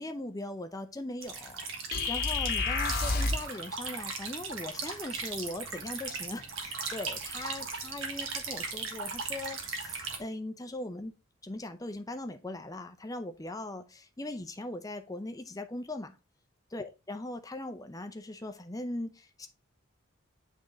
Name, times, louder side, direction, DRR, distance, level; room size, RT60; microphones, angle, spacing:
voice 1, 0.0-11.1 11.4-16.2 16.7-19.5, left 1 dB, 15° left, 0.6 m, -40 dB
sound 1, 1.2-10.2, right 4 dB, 70° right, 1.5 m, -38 dB
sound 2, 1.9-3.5, left 4 dB, 50° left, 1.1 m, -29 dB
8.5 x 3.7 x 3.9 m
head